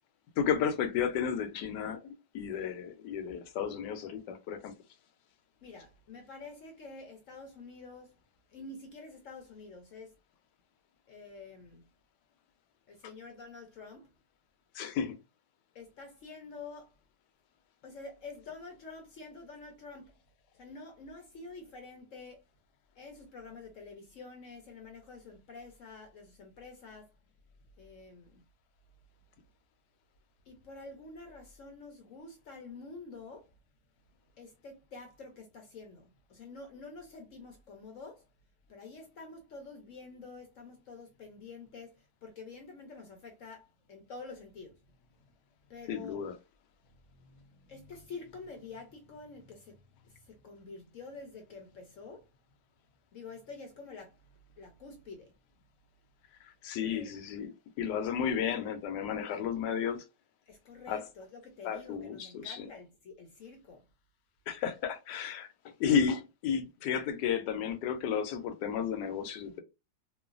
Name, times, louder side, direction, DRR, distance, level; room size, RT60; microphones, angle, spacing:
voice 1, 0.4-4.7 14.7-15.2 45.9-46.4 56.4-60.0 60.9-61.0 61.6-62.7 64.5-65.5 65.8-69.6, left 7 dB, 85° left, 1.2 m, -33 dB
voice 2, 5.6-8.2 8.5-10.1 11.1-11.8 12.9-14.1 15.7-16.9 17.8-20.2 20.6-22.4 23.0-27.2 27.8-28.4 30.5-33.5 34.4-38.3 38.7-45.3 45.7-46.2 47.0-52.3 53.1-54.2 54.6-55.3 56.8-57.1 60.5-63.8, left 3 dB, 65° left, 0.8 m, -48 dB
3.1 x 2.2 x 2.4 m
omnidirectional pair, 1.8 m